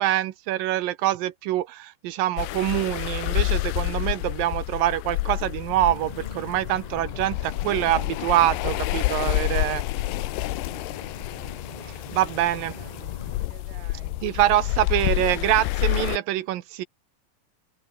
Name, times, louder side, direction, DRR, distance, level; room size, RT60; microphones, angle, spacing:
voice 1, 0.0-9.8 11.8-12.8 14.2-16.8, right 14 dB, 70° right, 2.4 m, -25 dB
sound 1, 2.4-16.2, left 19 dB, 80° left, 2.8 m, -29 dB
sound 2, 5.7-13.5, left 2 dB, 10° left, 2.5 m, -42 dB
voice 2, 12.3-14.3, right 12 dB, 85° right, 4.0 m, -51 dB
omnidirectional pair, 4.8 m